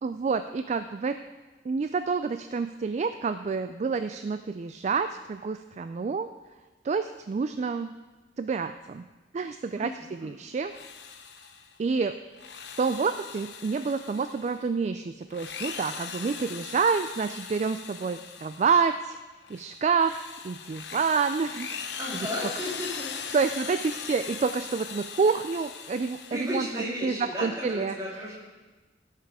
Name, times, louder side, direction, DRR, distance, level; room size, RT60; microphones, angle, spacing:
voice 1, 0.0-1.2 1.7-6.3 6.8-7.9 8.4-9.0 9.3-10.7 11.8-12.2 12.8-19.2 19.5-21.8 23.3-26.7 27.0-28.0, right 5 dB, 40° right, 10 dB, 0.3 m, -28 dB
voice 2, 9.7-10.3 22.0-23.4 26.3-28.4, equal, 20° right, -5 dB, 2.9 m, -34 dB
Drill, 10.6-11.8 12.3-14.7 15.2-18.9 19.4-26.9, left 6 dB, 70° left, 0.9 m, -40 dB
17.0 x 5.8 x 4.9 m, 1.2 s
head